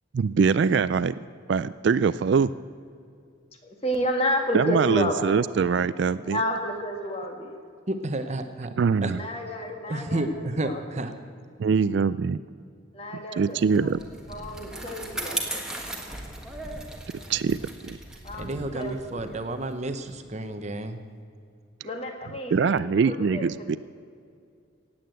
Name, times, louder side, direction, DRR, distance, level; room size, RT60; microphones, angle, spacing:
voice 1, 0.1-1.1 1.5-2.5 4.5-6.4 8.8-9.2 11.6-12.4 13.4-14.0 17.3-17.6 17.8-18.0 22.5-23.8, right 5 dB, 55° right, 16 dB, 0.3 m, -23 dB
voice 2, 3.6-5.3 6.2-7.6 9.1-10.8 12.9-13.9 14.3-15.6 18.2-19.3 21.8-23.8, equal, 30° left, 3 dB, 1.8 m, -31 dB
voice 3, 7.9-8.7 9.0-9.1 9.9-11.1 18.4-21.0, right 1 dB, 35° right, 8 dB, 0.8 m, -31 dB
Bicycle, 13.6-20.3, right 1 dB, 5° right, 1.4 m, -37 dB
16.5 x 8.8 x 7.9 m, 2.3 s
head